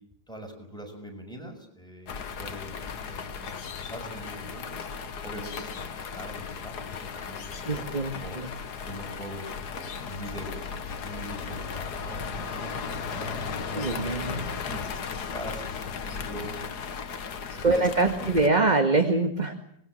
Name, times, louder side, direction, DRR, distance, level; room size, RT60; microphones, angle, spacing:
voice 1, 0.3-4.8 5.2-7.9 8.1-8.4 8.8-14.2 14.7-18.3, right 1 dB, ahead, 3 dB, 6.4 m, -43 dB
sound 1, 2.1-18.5, left 6 dB, 70° left, 1.9 m, -36 dB
voice 2, 7.7-8.5 13.8-14.8 17.5-19.5, right 3 dB, 25° right, 5 dB, 2.0 m, -25 dB
25.0 x 22.0 x 7.8 m, 0.72 s
omnidirectional pair, 1.8 m